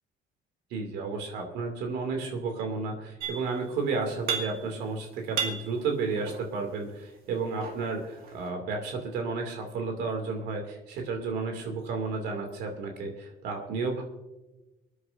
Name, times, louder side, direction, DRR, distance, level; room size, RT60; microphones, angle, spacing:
voice 1, 0.7-14.0, right 4 dB, 85° right, 3 dB, 2.4 m, -32 dB
sound 1, 3.2-3.7 4.0-4.9 5.2-6.7 7.4-8.5, right 6 dB, 55° right, 2.4 m, -35 dB
27.0 x 9.7 x 2.6 m, 1.1 s
cardioid pair, 110°, 17 cm